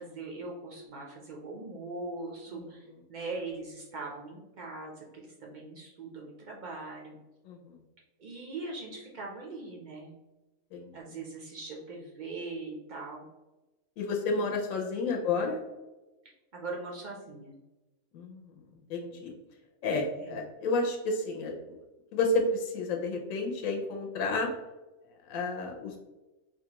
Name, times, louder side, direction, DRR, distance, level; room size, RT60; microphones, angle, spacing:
voice 1, 0.0-7.2 8.2-10.1 10.9-13.2 14.3-14.4 15.0-15.2 16.5-17.6 20.2-20.4, right 3 dB, 65° right, -1 dB, 0.4 m, -41 dB
voice 2, 7.5-7.8 10.7-10.9 14.0-15.6 18.1-18.5 18.9-19.3 19.8-21.8 22.1-24.5 25.3-26.0, left 3 dB, 80° left, 1 dB, 1.0 m, -31 dB
4.3 x 2.3 x 2.8 m, 1.1 s
omnidirectional pair, 1.4 m